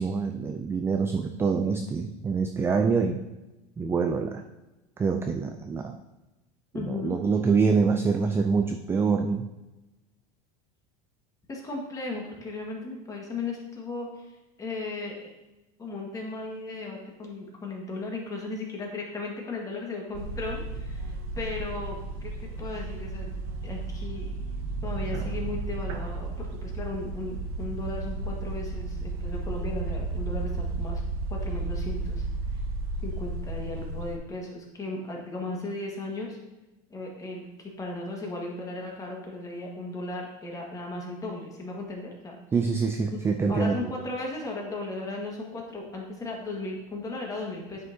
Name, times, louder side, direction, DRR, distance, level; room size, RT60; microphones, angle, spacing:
voice 1, 0.0-3.2 3.8-4.4 5.0-6.0 6.7-9.4 42.5-43.9, right 5 dB, 10° right, 5 dB, 0.3 m, -25 dB
voice 2, 6.7-7.2 11.5-14.3 14.6-15.3 15.8-22.3 22.6-23.3 23.6-24.3 24.8-31.0 31.3-32.2 33.0-36.4 36.9-42.4 43.5-47.9, left 2 dB, 15° left, -1 dB, 1.6 m, -36 dB
sound 1, 20.1-34.2, right 2 dB, 70° right, 0.9 m, -33 dB
9.6 x 5.4 x 2.7 m, 1.0 s
supercardioid pair, 140°, 19 cm